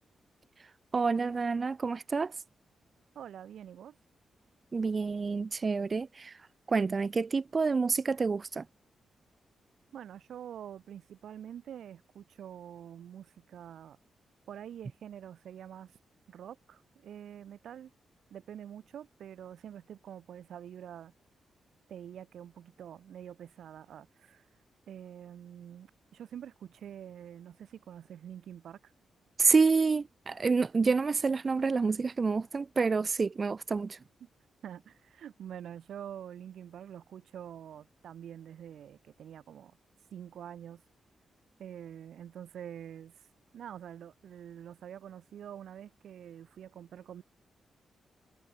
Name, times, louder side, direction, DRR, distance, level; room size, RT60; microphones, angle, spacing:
voice 1, 0.9-2.3 4.7-6.4 6.7-8.6 29.4-34.0, right 4 dB, 35° right, 0.3 m, -28 dB
voice 2, 3.1-4.0 9.9-14.0 14.5-16.0 16.3-17.9 18.3-21.1 21.9-24.4 24.9-28.9 34.2-34.3 34.6-39.8 40.1-40.8 41.6-43.1 43.5-47.2, right 9 dB, 80° right, 6.3 m, -46 dB
cardioid pair, 115°, 0 cm